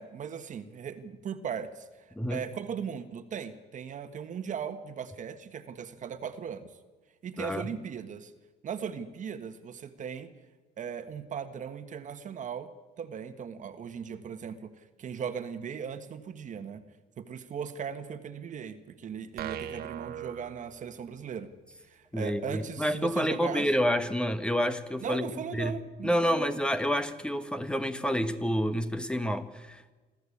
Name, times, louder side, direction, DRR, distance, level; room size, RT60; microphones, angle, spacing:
voice 1, 0.0-1.9 2.3-6.7 7.2-8.3 8.6-10.3 10.8-12.7 13.0-16.8 17.2-21.5 21.9-23.7 25.0-26.6, right 7 dB, 50° right, 1.6 m, -38 dB
voice 2, 7.4-7.7 22.1-25.8 26.0-29.9, equal, 5° left, 1.2 m, -29 dB
sound 1, 19.4-21.3, right 10 dB, 70° right, 1.5 m, -40 dB
26.5 x 13.5 x 8.6 m
cardioid pair, 110°, 17 cm